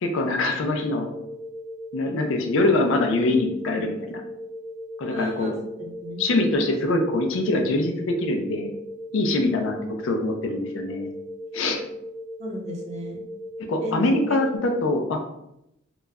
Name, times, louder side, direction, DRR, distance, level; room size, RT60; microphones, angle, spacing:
voice 1, 0.0-1.1 1.9-4.2 5.0-5.5 6.2-8.7 9.1-11.1 11.5-11.8 13.7-15.2, left 2 dB, 70° left, 3 dB, 0.4 m, -24 dB
sound 1, 0.7-14.6, equal, 40° left, 1.0 m, -38 dB
voice 2, 5.1-5.5 5.8-6.3 12.4-13.2 13.8-13.9 14.3-14.4, equal, 35° right, 0 dB, 0.5 m, -34 dB
2.2 x 2.0 x 3.4 m, 0.82 s
head